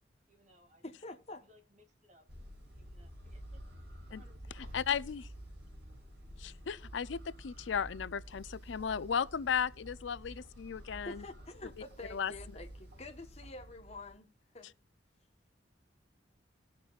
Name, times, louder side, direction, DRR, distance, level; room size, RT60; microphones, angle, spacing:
voice 1, 0.3-0.8 1.4-2.2 2.7-3.6 4.1-4.8, left 1 dB, 40° right, 2.2 m, -65 dB
voice 2, 0.8-1.4 11.0-14.7, left 2 dB, 35° left, 1.2 m, -47 dB
sound 1, 2.3-14.1, equal, 60° right, 5.7 m, -50 dB
voice 3, 4.5-5.3 6.4-11.2 12.1-12.3, left 7 dB, 80° left, 0.5 m, -35 dB
19.0 x 6.7 x 2.4 m
head